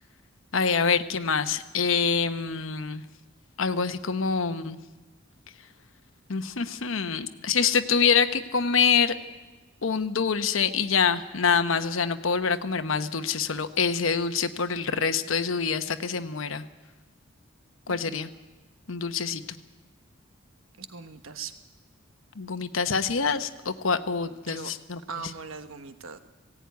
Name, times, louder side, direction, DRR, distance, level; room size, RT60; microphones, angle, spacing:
voice 1, 0.5-3.0 3.6-4.8 6.3-9.1 9.8-16.6 17.9-18.3 18.9-19.4 22.4-25.0, left 5 dB, 70° left, 9 dB, 1.0 m, -25 dB
voice 2, 20.8-21.5 24.5-24.7 25.1-26.2, right 5 dB, 80° right, 9 dB, 1.2 m, -39 dB
19.5 x 16.5 x 9.5 m, 1.3 s
head